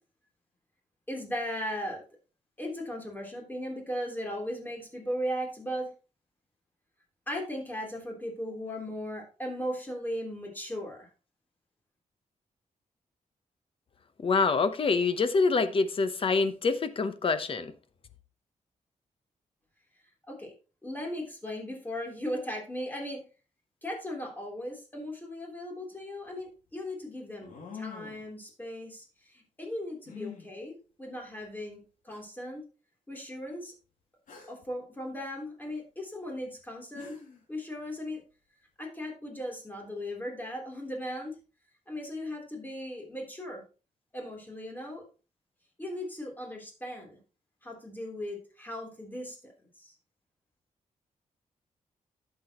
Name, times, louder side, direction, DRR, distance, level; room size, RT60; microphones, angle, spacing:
voice 1, 1.1-2.0 2.6-5.9 7.3-11.1 20.3-20.5 20.8-23.2 23.8-32.6 33.1-33.7 34.5-37.1 37.5-38.2 38.8-41.3 41.9-43.6 44.1-45.0 45.8-47.2 47.6-49.4 49.8-49.9, equal, 15° left, 3.4 m, -37 dB
voice 2, 14.2-17.7, left 4 dB, 40° left, 0.9 m, -26 dB
sound 1, 25.9-26.0 27.4-28.3 30.1-30.5 31.5-31.6 32.1-32.2 34.3-34.7 36.6-36.7 36.9-37.4, left 6 dB, 85° left, 2.6 m, -44 dB
11.5 x 7.8 x 3.0 m
wide cardioid pair, 130°, 14 cm